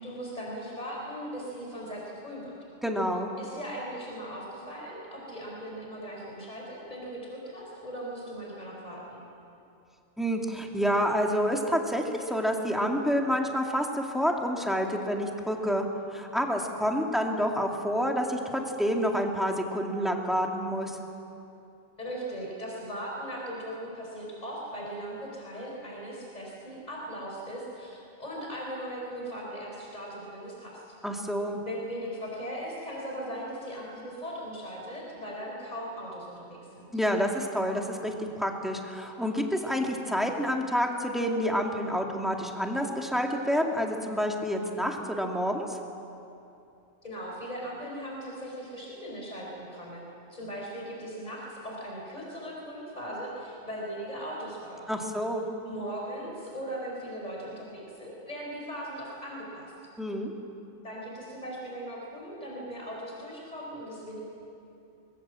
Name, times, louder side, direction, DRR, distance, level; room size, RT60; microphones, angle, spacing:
voice 1, 0.0-2.5 3.4-9.2 22.0-30.8 31.6-36.9 47.0-50.0 50.3-54.9 55.6-59.7 60.8-64.2, equal, 30° left, -2 dB, 4.9 m, -39 dB
voice 2, 2.8-3.3 10.2-15.8 16.1-21.0 31.0-31.6 36.9-45.8 54.9-55.4 60.0-60.3, equal, ahead, 1 dB, 2.3 m, -28 dB
24.5 x 21.5 x 7.6 m, 2.7 s
omnidirectional pair, 1.3 m